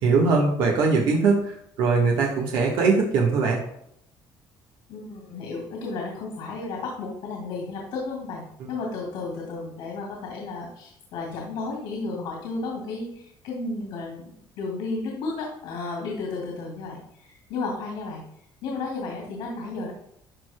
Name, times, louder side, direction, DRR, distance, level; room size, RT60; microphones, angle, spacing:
voice 1, 0.0-3.6, right 4 dB, 80° right, -1 dB, 1.3 m, -21 dB
voice 2, 4.9-14.2 14.5-18.2 18.6-19.9, left 3 dB, 85° left, -1 dB, 2.4 m, -33 dB
12.0 x 4.8 x 2.2 m, 0.72 s
cardioid pair, 140°, 8 cm